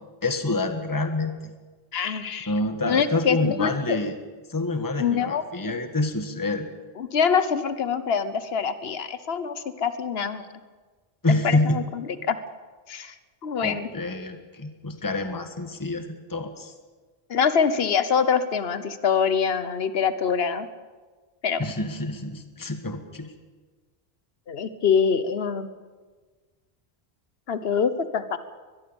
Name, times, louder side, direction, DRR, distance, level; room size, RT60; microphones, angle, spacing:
voice 1, 0.2-1.3 2.5-4.1 4.5-6.7 11.2-11.8 13.6-16.7 21.6-23.3, left 2 dB, 20° left, 7 dB, 1.5 m, -27 dB
voice 2, 1.9-2.5 2.9-4.0 5.0-5.7 7.0-10.4 11.3-12.4 12.9-13.1 13.4-13.9 17.3-20.7 21.4-21.6 24.5-25.7 27.5-28.4, left 6 dB, 75° left, 12 dB, 1.3 m, -25 dB
22.0 x 21.5 x 7.2 m, 1.4 s
omnidirectional pair, 1.0 m